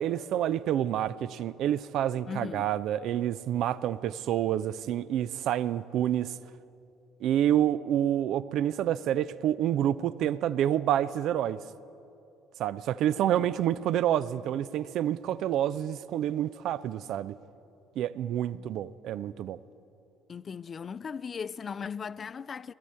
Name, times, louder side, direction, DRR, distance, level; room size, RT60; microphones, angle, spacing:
voice 1, 0.0-6.3 7.2-11.6 12.6-17.4 18.0-19.6, right 11 dB, 60° right, 0.4 m, -28 dB
voice 2, 2.3-2.7 13.2-13.5 18.5-18.7 20.3-22.7, left 6 dB, 40° left, 0.3 m, -38 dB
21.0 x 13.0 x 4.3 m
figure-of-eight pair, 50°, 0 cm